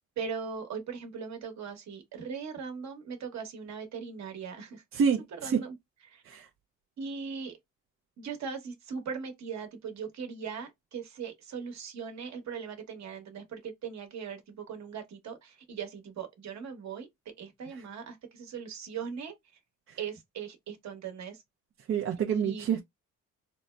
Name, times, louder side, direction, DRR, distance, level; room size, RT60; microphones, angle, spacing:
voice 1, 0.2-4.8 5.4-5.7 6.1-6.3 7.0-7.6 8.2-17.1 17.4-19.3 20.0-21.4 22.3-22.6, right 6 dB, 65° right, 1.2 m, -39 dB
voice 2, 4.9-5.6 6.3-6.5 21.9-22.8, right 7 dB, 45° right, 0.5 m, -27 dB
3.9 x 2.1 x 2.2 m
cardioid pair, 90°, 30 cm